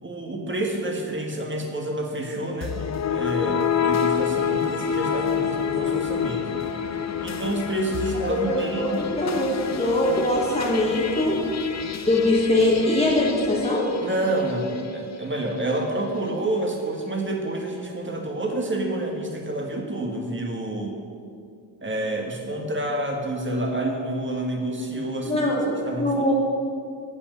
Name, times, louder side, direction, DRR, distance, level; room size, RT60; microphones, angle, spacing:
voice 1, 0.0-6.4 7.2-9.0 14.0-21.0 21.8-25.5 25.9-26.3, right 1 dB, 25° right, 2 dB, 1.8 m, -28 dB
sound 1, 2.6-14.9, left 7 dB, 35° left, 0.7 m, -28 dB
voice 2, 8.3-11.4 12.1-13.9 25.3-26.3, left 1 dB, 15° left, -4 dB, 1.8 m, -22 dB
8.6 x 5.3 x 7.7 m, 2.3 s
supercardioid pair, 65°, 46 cm